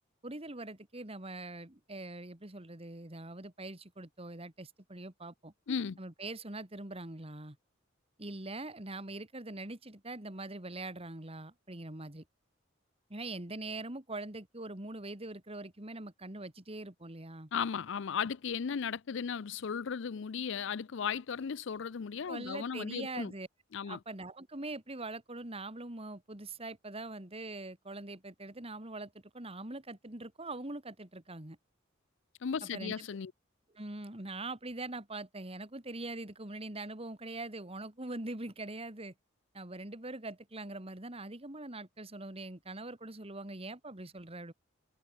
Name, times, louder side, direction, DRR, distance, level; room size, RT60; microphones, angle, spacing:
voice 1, 0.2-5.5 6.0-7.6 8.2-12.2 13.1-17.5 22.3-23.5 23.8-31.6 32.6-32.9 33.7-39.1 39.5-44.5, right 2 dB, 30° right, 2.5 m, -43 dB
voice 2, 5.7-6.0 17.5-23.3 23.7-24.0 32.4-33.3, left 6 dB, 65° left, 0.5 m, -36 dB
head